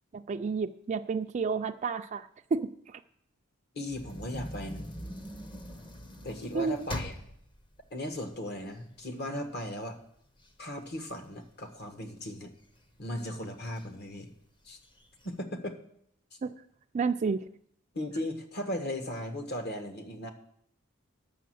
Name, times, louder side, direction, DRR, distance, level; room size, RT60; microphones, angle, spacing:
voice 1, 0.1-2.3 2.5-2.7 6.5-6.8 16.4-16.5 16.9-17.4, right 5 dB, 35° right, 5 dB, 0.3 m, -30 dB
voice 2, 3.7-4.9 6.2-7.2 7.9-10.0 10.6-12.5 13.0-14.3 14.6-14.8 15.2-15.8 17.9-20.3, left 1 dB, 55° left, 6 dB, 1.3 m, -37 dB
sound 1, 3.9-9.1 9.6-9.7 10.0-12.1 12.6-13.1 13.7-13.9 14.1-14.2 14.7-15.3, equal, 25° left, 0.8 m, -42 dB
9.2 x 6.3 x 7.7 m, 0.72 s
head